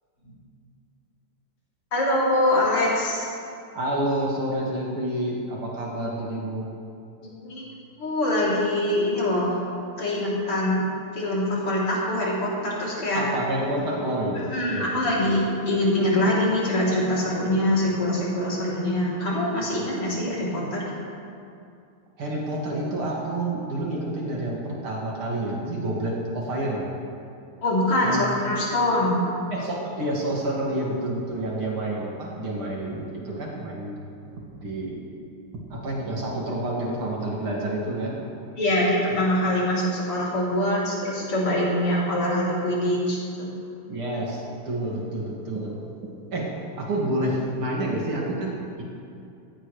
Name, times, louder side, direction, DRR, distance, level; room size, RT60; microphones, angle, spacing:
voice 1, 1.9-3.3 7.4-7.6 8.0-9.5 10.0-10.8 11.1-13.2 14.3-20.8 27.6-29.2 38.6-43.5, left 1 dB, 80° left, -7 dB, 4.3 m, -24 dB
voice 2, 3.7-6.7 13.1-14.9 22.2-26.9 28.0-28.2 29.5-33.9 34.6-35.0 35.7-38.2 43.9-45.8 46.3-46.5 46.8-48.8, right 1 dB, 70° right, -4 dB, 3.1 m, -28 dB
17.5 x 16.0 x 3.3 m, 2.5 s
omnidirectional pair, 2.4 m